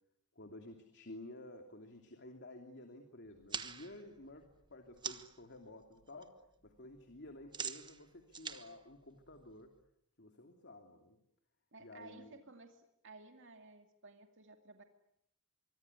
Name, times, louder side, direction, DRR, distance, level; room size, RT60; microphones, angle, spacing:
voice 1, 0.3-6.4 6.6-9.7 10.2-11.2 11.8-12.4, left 1 dB, 50° left, 5 dB, 2.9 m, -52 dB
sound 1, 3.3-5.4 5.8-6.3 6.5-9.8, right 6 dB, 20° right, 1.3 m, -45 dB
voice 2, 11.7-14.8, right 3 dB, 55° right, 5 dB, 2.4 m, -56 dB
24.5 x 24.5 x 9.8 m, 0.75 s
head